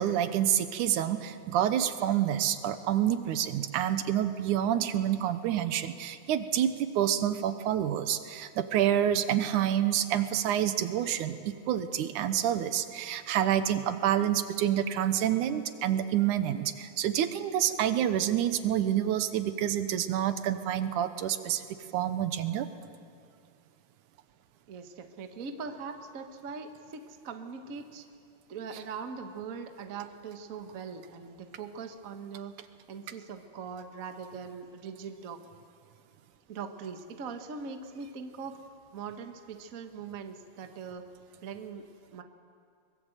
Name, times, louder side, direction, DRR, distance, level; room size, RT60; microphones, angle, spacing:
voice 1, 0.0-21.6 21.9-22.7, right 10 dB, 85° right, 10 dB, 2.5 m, -28 dB
voice 2, 24.7-28.0 28.5-32.5 32.9-35.4 36.5-38.6 38.9-41.0 41.4-41.8 42.1-42.2, right 5 dB, 50° right, 6 dB, 1.0 m, -41 dB
23.0 x 21.0 x 8.0 m, 2.3 s
omnidirectional pair, 3.5 m